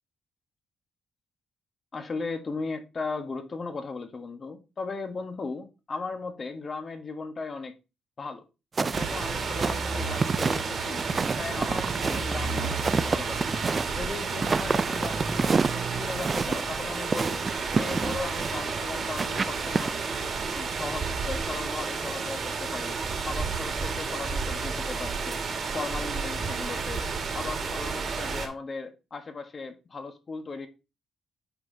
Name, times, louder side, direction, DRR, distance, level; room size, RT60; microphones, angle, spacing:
voice 1, 1.9-7.7 8.2-8.4 8.8-11.0 11.4-13.5 14.0-17.5 17.8-20.0 20.5-23.0 23.2-25.4 25.7-27.1 27.3-30.7, left 4 dB, 40° left, 7 dB, 1.2 m, -37 dB
sound 1, 8.8-19.9, right 4 dB, 35° right, 0.3 m, -29 dB
sound 2, 8.9-28.5, right 4 dB, 50° right, 1.8 m, -31 dB
8.7 x 5.7 x 2.7 m, 0.29 s
cardioid pair, 90°, 0 cm